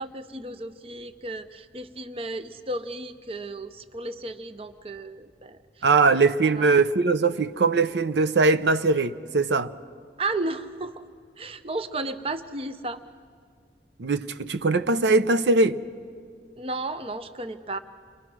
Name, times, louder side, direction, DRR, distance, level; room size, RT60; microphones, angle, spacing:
voice 1, 0.0-5.8 6.4-6.9 10.2-11.0 11.4-13.0 16.6-17.8, right 2 dB, 30° right, 0.7 m, -34 dB
voice 2, 5.8-9.7 14.0-15.8, right 3 dB, 80° right, 0.7 m, -21 dB
29.0 x 23.0 x 6.1 m
head